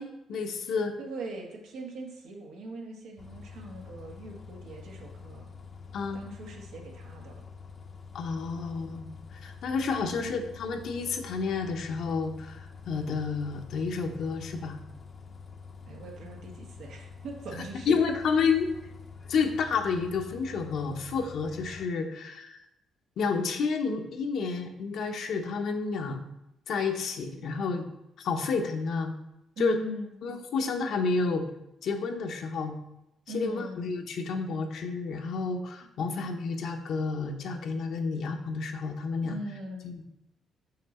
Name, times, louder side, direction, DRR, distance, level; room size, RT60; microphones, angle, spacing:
voice 1, 0.0-1.0 5.9-6.2 8.1-14.8 17.9-18.7 19.3-22.6 23.2-26.2 26.7-27.8 28.2-29.1 29.6-29.8 30.2-31.5 31.8-32.8 33.3-39.4 39.8-40.0, left 4 dB, 70° left, 4 dB, 0.9 m, -30 dB
voice 2, 1.0-5.5 6.1-7.4 10.0-10.5 15.8-18.0 29.6-30.1 33.3-33.8 36.0-36.3 39.2-40.0, right 1 dB, 85° right, 0 dB, 1.5 m, -41 dB
Bus, 3.2-21.9, left 5 dB, 45° left, 0.7 m, -47 dB
6.1 x 5.8 x 4.3 m, 0.86 s
cardioid pair, 90°, 0 cm